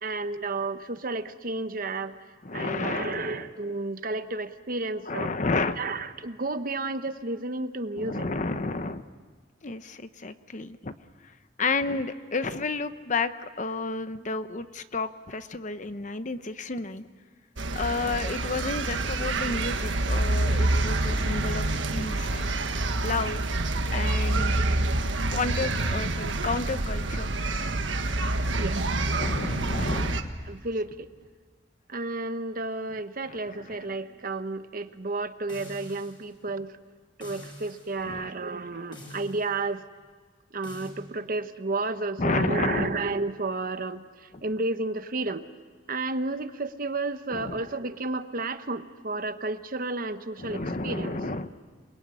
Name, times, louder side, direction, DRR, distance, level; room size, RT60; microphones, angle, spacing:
voice 1, 0.0-2.2 2.5-5.3 5.8-8.3 28.6-28.8 30.5-31.1 31.9-36.7 37.2-39.9 40.5-44.0 44.4-45.4 45.9-51.3, right 3 dB, 50° right, 10 dB, 1.1 m, -32 dB
voice 2, 2.4-3.5 5.1-5.8 7.9-9.0 9.6-10.9 11.6-13.3 13.6-17.1 17.7-22.5 23.0-23.4 23.9-24.6 25.3-27.3 29.2-30.3 33.3-33.9 38.0-38.3 38.7-38.9 42.2-43.1 44.3-44.4 47.3-47.6 50.4-51.5, left 3 dB, 40° left, 11 dB, 0.9 m, -31 dB
sound 1, 17.6-30.2, right 2 dB, 75° right, 1.5 m, -27 dB
sound 2, 35.5-36.3 37.2-37.9 38.9-39.5 40.6-41.0, left 1 dB, 25° left, 6.2 m, -45 dB
28.0 x 21.5 x 9.8 m, 1.6 s
head